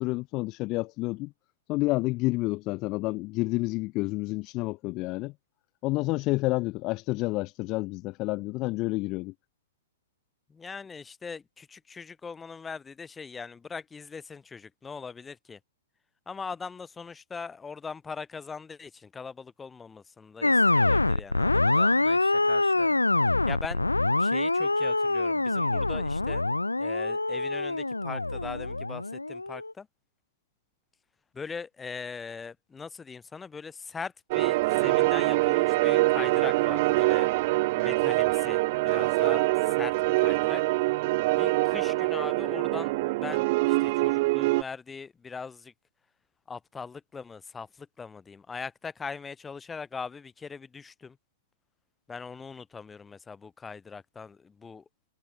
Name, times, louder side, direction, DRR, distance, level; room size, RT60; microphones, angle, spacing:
voice 1, 0.0-1.3 1.7-5.3 5.8-9.3, left 22 dB, 30° left, 0.4 m, -29 dB
voice 2, 10.5-15.6 16.3-23.8 24.2-26.4 26.8-29.9 31.3-37.3 37.7-40.6 41.4-45.7 46.5-51.2 52.1-54.8, left 5 dB, 10° left, 4.7 m, -41 dB
sound 1, 20.4-29.7, left 2 dB, 85° left, 1.3 m, -25 dB
sound 2, 34.3-44.6, right 21 dB, 40° right, 0.4 m, -24 dB
figure-of-eight pair, 110°, 0 cm